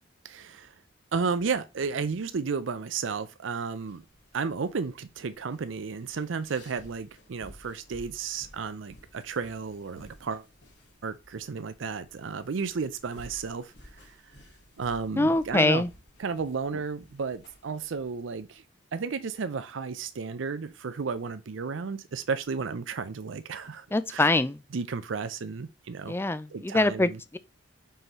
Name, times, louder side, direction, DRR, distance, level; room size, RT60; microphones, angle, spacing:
voice 1, 0.2-0.7 1.1-4.0 4.3-10.5 11.0-14.2 14.8-15.8 16.2-18.6 18.9-24.4 24.7-26.1 26.5-27.2, right 5 dB, 75° right, 0.5 m, -33 dB
sound 1, 3.7-18.4, left 1 dB, 60° left, 2.2 m, -55 dB
voice 2, 15.2-15.9 23.9-24.6 26.1-27.4, left 2 dB, 10° left, 0.4 m, -24 dB
5.6 x 5.5 x 3.0 m
head